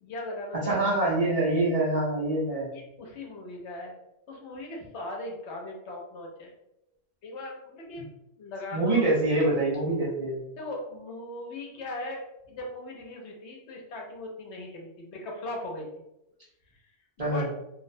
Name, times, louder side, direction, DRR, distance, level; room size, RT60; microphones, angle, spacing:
voice 1, 0.0-0.8 2.7-3.9 4.3-6.5 7.2-8.1 8.4-9.1 10.6-15.9 17.2-17.5, left 2 dB, 80° left, 0 dB, 0.9 m, -39 dB
voice 2, 0.6-2.7 8.7-10.4 17.2-17.5, right 2 dB, 40° right, -6 dB, 0.6 m, -25 dB
2.4 x 2.0 x 2.6 m, 0.83 s
omnidirectional pair, 1.1 m